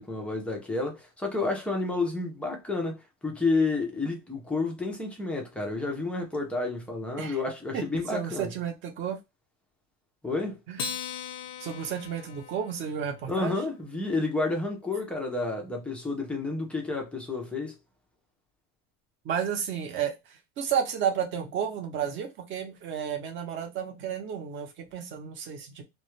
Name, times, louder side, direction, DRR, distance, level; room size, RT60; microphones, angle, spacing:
voice 1, 0.0-8.5 10.2-10.6 13.3-17.8, left 3 dB, 5° left, 0.3 m, -30 dB
voice 2, 8.1-9.2 10.7-10.8 11.6-13.6 19.2-20.1 20.6-25.8, right 8 dB, 35° right, 0.6 m, -32 dB
Acoustic guitar, 10.7-13.4, left 7 dB, 80° left, 0.6 m, -39 dB
2.2 x 2.1 x 2.9 m
cardioid pair, 150°, 36 cm